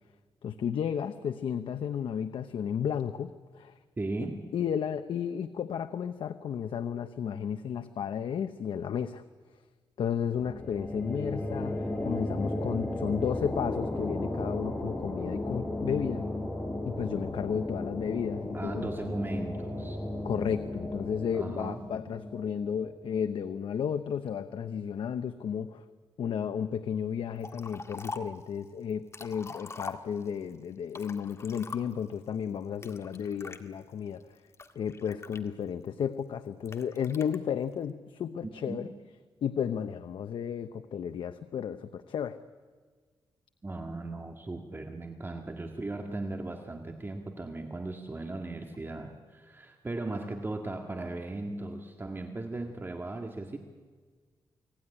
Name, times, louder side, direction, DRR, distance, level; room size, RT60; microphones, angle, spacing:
voice 1, 0.4-3.7 4.5-9.2 10.0-16.2 16.8-18.9 20.2-25.8 26.2-34.2 34.7-38.9 39.4-42.4, left 8 dB, 80° left, 10 dB, 0.9 m, -33 dB
voice 2, 4.0-4.4 18.5-20.0 21.3-21.8 38.4-38.8 43.6-53.6, right 2 dB, 25° right, 4 dB, 2.0 m, -37 dB
sound 1, 10.4-23.7, left 1 dB, 15° left, 5.3 m, -35 dB
Liquid, 27.4-28.4 28.9-30.4 30.9-32.1 32.8-33.6 34.2-35.9 36.7-37.4, left 3 dB, 35° left, 1.8 m, -43 dB
29.0 x 19.5 x 10.0 m, 1.5 s
cardioid pair, 105°, 9 cm